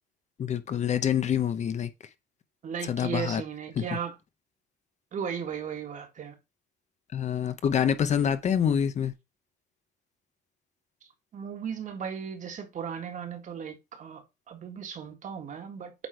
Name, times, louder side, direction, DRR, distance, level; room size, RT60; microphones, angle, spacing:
voice 1, 0.4-1.9 2.8-3.4 3.8-3.9 7.1-9.1, left 8 dB, 45° left, 0.7 m, -26 dB
voice 2, 2.6-4.2 5.1-6.4 11.3-15.9, right 7 dB, 50° right, 1.7 m, -36 dB
8.2 x 3.3 x 4.5 m
cardioid pair, 110°, 17 cm